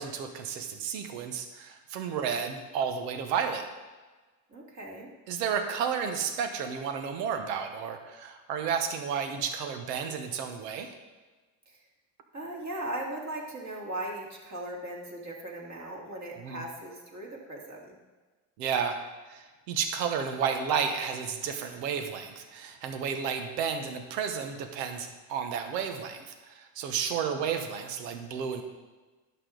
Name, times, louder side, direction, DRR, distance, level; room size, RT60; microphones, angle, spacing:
voice 1, 0.0-3.6 5.3-10.9 16.4-16.6 18.6-19.0 19.3-28.6, right 7 dB, 85° right, 6 dB, 1.2 m, -32 dB
voice 2, 4.5-5.1 11.7-11.8 12.3-18.0, right 1 dB, 35° right, -2 dB, 2.7 m, -38 dB
11.0 x 7.3 x 3.9 m, 1.3 s
supercardioid pair, 90°, 48 cm